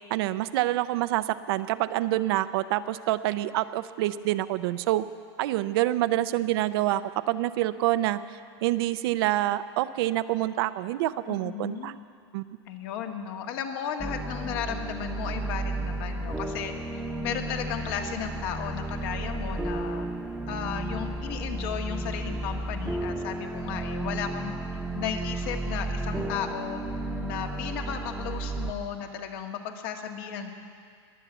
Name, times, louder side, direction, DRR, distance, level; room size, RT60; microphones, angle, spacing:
voice 1, 0.1-5.1 5.4-11.9 12.3-12.4, right 15 dB, 60° right, 13 dB, 0.6 m, -27 dB
voice 2, 11.3-11.9 12.7-20.1 20.5-24.5 24.9-26.8 27.2-30.5, left 8 dB, 55° left, 3 dB, 1.7 m, -34 dB
sound 1, 14.0-28.7, right 2 dB, 5° right, 1.0 m, -33 dB
21.5 x 7.4 x 7.9 m, 2.3 s
supercardioid pair, 130°, 14 cm